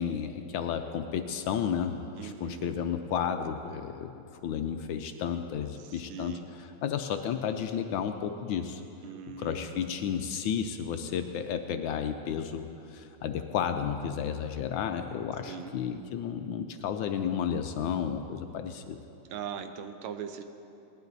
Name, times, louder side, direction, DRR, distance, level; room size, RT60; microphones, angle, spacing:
voice 1, 0.0-8.8 9.4-19.0, left 8 dB, 75° left, 7 dB, 1.3 m, -32 dB
voice 2, 2.2-2.7 5.8-6.5 9.0-9.9 15.5-15.7 19.3-20.4, right 7 dB, 75° right, 8 dB, 1.5 m, -40 dB
18.5 x 11.5 x 4.0 m, 2.7 s
omnidirectional pair, 2.4 m